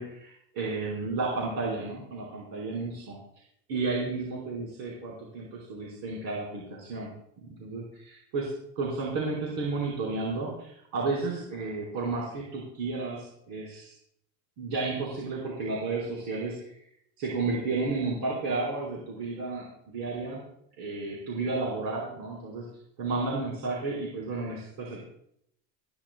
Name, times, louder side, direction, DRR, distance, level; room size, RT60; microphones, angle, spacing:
voice 1, 0.0-3.2 3.7-7.1 7.4-13.9 14.6-16.7 17.2-20.4 20.8-22.6 23.0-25.0, right 3 dB, 65° right, -4 dB, 4.8 m, -32 dB
28.5 x 11.0 x 2.3 m, 0.70 s
cardioid pair, 145°, 48 cm